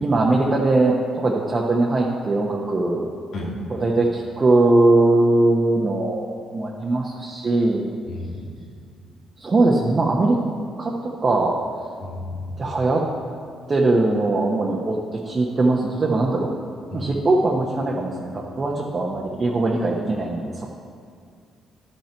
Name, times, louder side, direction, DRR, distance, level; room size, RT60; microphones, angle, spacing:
voice 1, 0.0-3.1 3.7-7.9 9.4-10.4 10.8-11.6 12.6-13.0 13.7-16.5 16.9-20.7, right 2 dB, 35° right, -2 dB, 0.9 m, -20 dB
voice 2, 8.1-8.5 12.0-12.5 16.9-17.1, left 2 dB, 80° left, -5 dB, 2.4 m, -32 dB
12.0 x 5.8 x 4.5 m, 2.3 s
cardioid pair, 90°, 0 cm